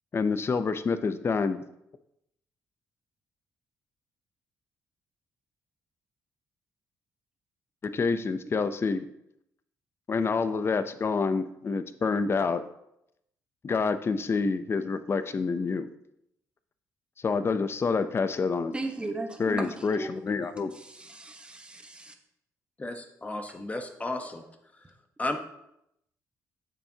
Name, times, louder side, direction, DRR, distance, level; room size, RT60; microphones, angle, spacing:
voice 1, 0.1-1.6 7.8-9.1 10.1-12.6 13.6-15.9 17.2-18.7 19.4-20.7, left 4 dB, 40° left, 11 dB, 0.6 m, -27 dB
voice 2, 18.7-20.2 20.7-22.1, right 2 dB, 15° right, 4 dB, 1.2 m, -37 dB
voice 3, 22.8-24.4 24.7-25.4, left 2 dB, 20° left, 5 dB, 1.1 m, -34 dB
9.1 x 7.1 x 2.9 m, 0.80 s
cardioid pair, 85°, 7 cm